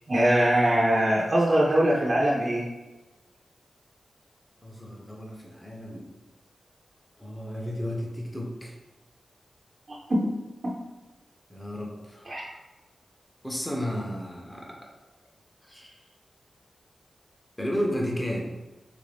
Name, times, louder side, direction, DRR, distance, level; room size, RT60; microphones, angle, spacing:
voice 1, 0.1-2.6 9.9-10.2 12.3-12.4, right 1 dB, 35° right, -4 dB, 0.5 m, -22 dB
voice 2, 4.6-6.1 7.2-8.8 11.5-12.6 13.4-14.8 15.7-16.0 17.6-18.4, equal, 10° left, -1 dB, 0.6 m, -33 dB
3.5 x 2.5 x 3.3 m, 1.1 s
wide cardioid pair, 130°, 0 cm